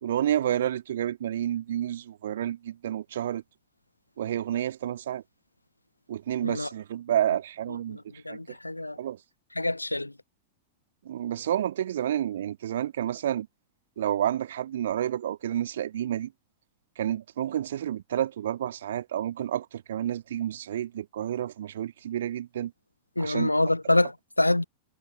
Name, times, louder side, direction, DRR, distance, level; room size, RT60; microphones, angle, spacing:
voice 1, 0.0-3.4 4.2-5.2 6.1-8.0 8.3-8.6 9.0-9.2 11.1-13.5 14.0-16.3 17.0-22.7 23.2-23.5, right 11 dB, 60° right, 1.9 m, -30 dB
voice 2, 7.9-9.0 9.6-10.1 23.2-24.6, left 2 dB, 85° left, 0.5 m, -26 dB
figure-of-eight pair, 90°, 0 cm